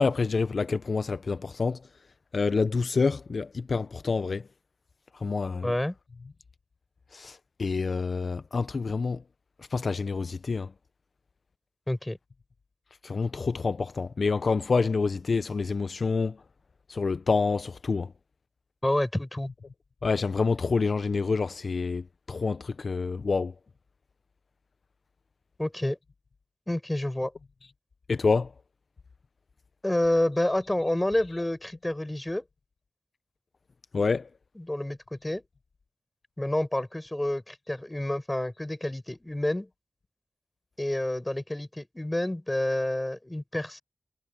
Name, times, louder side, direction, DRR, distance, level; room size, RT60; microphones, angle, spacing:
voice 1, 0.0-1.8 2.3-4.4 5.2-5.7 7.1-9.2 9.7-10.7 13.0-16.3 16.9-18.1 20.0-22.0 22.3-23.5 28.1-28.5 33.9-34.2, left 4 dB, 65° left, 0.4 m, -27 dB
voice 2, 5.6-6.0 11.9-12.2 18.8-19.5 25.6-26.0 26.7-27.3 29.8-32.4 34.5-35.4 36.4-39.7 40.8-43.8, left 1 dB, 15° left, 5.0 m, -29 dB
wide cardioid pair, 110°, 0 cm